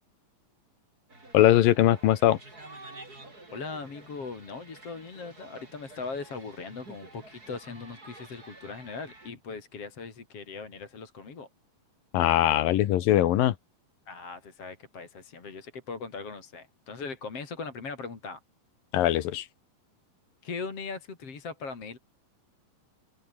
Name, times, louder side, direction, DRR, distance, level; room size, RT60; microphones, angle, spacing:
sound 1, 1.1-9.3, right 2 dB, 25° right, 6.7 m, -50 dB
voice 1, 1.3-2.4 12.1-13.5 18.9-19.4, left 13 dB, 75° left, 3.1 m, -21 dB
voice 2, 3.5-11.5 14.1-18.4 20.4-22.0, left 4 dB, 40° left, 4.6 m, -39 dB
open air
omnidirectional pair, 4.1 m